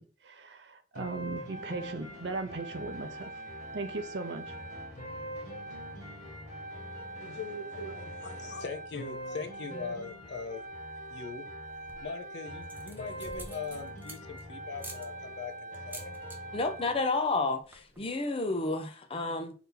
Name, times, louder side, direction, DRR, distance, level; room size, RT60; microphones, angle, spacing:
voice 1, 0.0-3.3 3.7-4.5, right 3 dB, 70° right, 0.6 m, -38 dB
sound 1, 1.0-17.0, right 1 dB, 50° left, 1.5 m, -42 dB
sound 2, 1.4-8.5, right 1 dB, 40° right, 0.9 m, -55 dB
voice 2, 7.2-10.6 11.0-11.5 12.0-16.1 16.5-16.6, left 4 dB, 70° left, 0.7 m, -41 dB
sound 3, 11.7-12.2 12.6-14.4 14.8-15.1 15.7-16.4 16.7-17.0 17.2-17.3 17.6-18.0, right 2 dB, 10° right, 0.7 m, -47 dB
voice 3, 16.5-19.5, left 3 dB, 30° left, 0.6 m, -30 dB
4.0 x 2.8 x 3.9 m
head